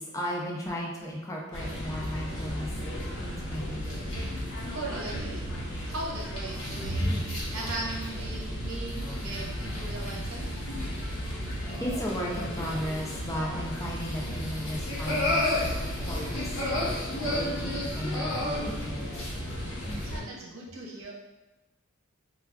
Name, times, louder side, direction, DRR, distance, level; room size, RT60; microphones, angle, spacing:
voice 1, 0.0-2.7 3.2-3.9 7.0-7.2 11.8-16.6 17.2-19.1 19.8-20.1, equal, 15° left, -2 dB, 0.3 m, -35 dB
sound 1, 1.5-20.2, left 1 dB, 70° left, 0.9 m, -33 dB
voice 2, 4.7-5.5 5.8-7.1 7.5-10.6 20.0-21.1, right 2 dB, 85° right, -2 dB, 0.7 m, -38 dB
2.3 x 2.3 x 3.4 m, 1.0 s
head